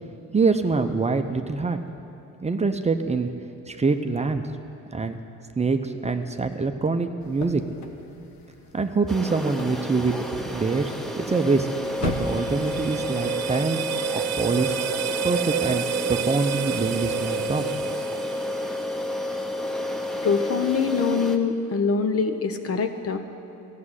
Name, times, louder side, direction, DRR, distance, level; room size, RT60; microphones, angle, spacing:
voice 1, 0.3-1.8 2.4-3.3 3.7-4.4 4.9-5.2 5.6-7.6 8.7-10.2 10.5-11.7 12.0-13.8 14.1-14.8 15.2-17.7, right 4 dB, 20° right, 7 dB, 0.7 m, -25 dB
sound 1, 7.2-13.1, left 4 dB, 70° left, 1.3 m, -38 dB
sound 2, 9.1-21.4, left 1 dB, ahead, 0.9 m, -30 dB
sound 3, 11.8-18.9, right 11 dB, 60° right, 0.5 m, -31 dB
voice 2, 20.2-23.2, left 5 dB, 50° left, 7 dB, 1.1 m, -24 dB
13.5 x 7.4 x 9.8 m, 2.9 s
cardioid pair, 90°, 30 cm